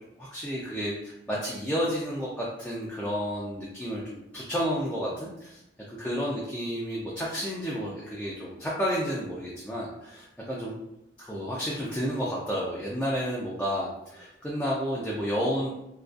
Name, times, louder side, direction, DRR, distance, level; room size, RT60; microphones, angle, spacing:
voice 1, 0.2-5.6 5.9-10.8 11.2-15.7, equal, 5° left, -6 dB, 0.3 m, -31 dB
2.4 x 2.2 x 2.3 m, 0.84 s
head